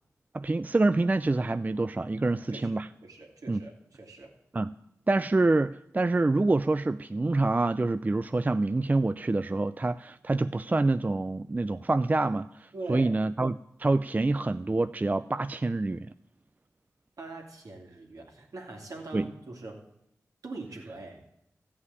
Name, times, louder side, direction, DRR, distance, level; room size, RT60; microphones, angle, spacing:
voice 1, 0.3-2.9 3.5-3.6 4.5-4.7 5.1-16.1 19.1-19.3, right 2 dB, 25° right, 13 dB, 0.4 m, -26 dB
voice 2, 2.2-4.4 12.7-13.1 17.2-19.8 20.4-21.2, right 2 dB, 70° right, 0 dB, 2.7 m, -42 dB
14.0 x 5.7 x 9.5 m, 0.80 s
cardioid pair, 45°, 6 cm